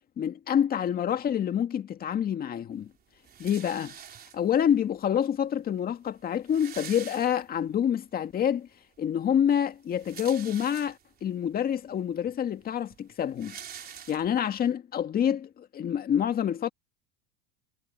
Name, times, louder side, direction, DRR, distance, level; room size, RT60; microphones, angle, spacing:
voice 1, 0.2-2.9 3.4-4.0 4.3-8.7 9.0-13.6 14.1-16.7, left 9 dB, 30° left, 1.8 m, -27 dB
sound 1, 3.2-4.7 5.5-5.6 5.8-5.9 6.2-7.8 8.2-8.3 9.7-11.2 11.9-12.0 12.2-14.6, right 9 dB, 30° right, 4.1 m, -45 dB
supercardioid pair, 135°, 32 cm